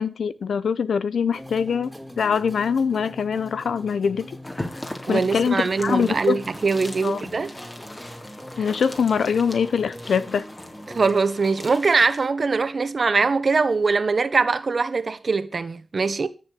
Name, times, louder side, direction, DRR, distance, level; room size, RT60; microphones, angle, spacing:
voice 1, 0.0-1.9 2.2-4.3 5.1-6.4 7.0-7.2 8.6-10.5, left 6 dB, 90° left, 0.9 m, -23 dB
sound 1, 1.3-11.1, equal, ahead, 3.4 m, -42 dB
sound 2, 4.4-12.3, left 1 dB, 25° left, 3.7 m, -39 dB
voice 2, 5.1-7.5 10.9-16.3, right 4 dB, 60° right, 1.4 m, -22 dB
13.5 x 7.0 x 7.8 m
cardioid pair, 50°, 0 cm